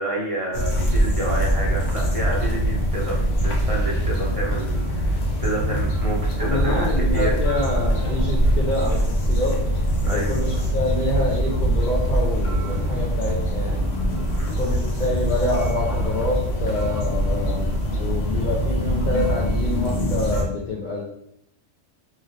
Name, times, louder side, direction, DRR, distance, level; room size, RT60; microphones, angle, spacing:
voice 1, 0.0-7.3 10.0-10.4 14.3-14.6, right 2 dB, 40° right, -4 dB, 0.5 m, -29 dB
sound 1, 0.5-20.5, equal, 75° left, 1.1 m, -23 dB
voice 2, 6.4-9.5 10.0-13.8 14.6-17.7 17.9-21.0, left 2 dB, 50° left, -5 dB, 0.6 m, -27 dB
3.0 x 2.8 x 2.5 m, 0.77 s
omnidirectional pair, 1.3 m